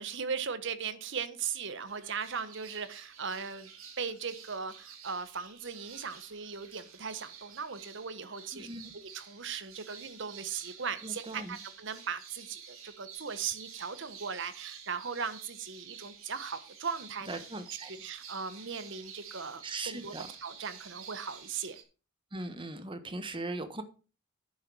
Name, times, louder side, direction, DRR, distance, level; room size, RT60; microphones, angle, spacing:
voice 1, 0.0-3.7 4.0-8.7 8.9-17.4 17.9-21.8, right 6 dB, 60° right, 1.1 m, -38 dB
sound 1, 1.9-21.8, right 7 dB, 80° right, 2.8 m, -50 dB
voice 2, 8.5-8.9 11.0-11.6 17.3-17.9 19.6-20.3 22.3-23.8, right 2 dB, 25° right, 1.2 m, -39 dB
10.5 x 6.8 x 6.2 m
head